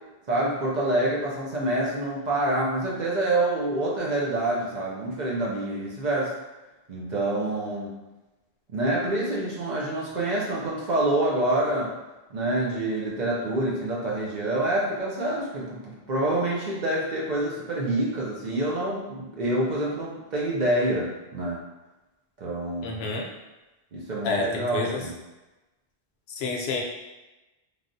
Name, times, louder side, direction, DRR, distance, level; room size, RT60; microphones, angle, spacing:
voice 1, 0.3-6.3 6.9-7.9 8.7-11.9 12.3-21.6 22.4-23.0 23.9-25.2, right 1 dB, 50° right, -5 dB, 0.7 m, -27 dB
voice 2, 22.8-23.3 24.2-25.0 26.4-26.8, left 3 dB, 75° left, 0 dB, 0.8 m, -28 dB
3.3 x 2.4 x 2.6 m, 1.1 s
omnidirectional pair, 1.1 m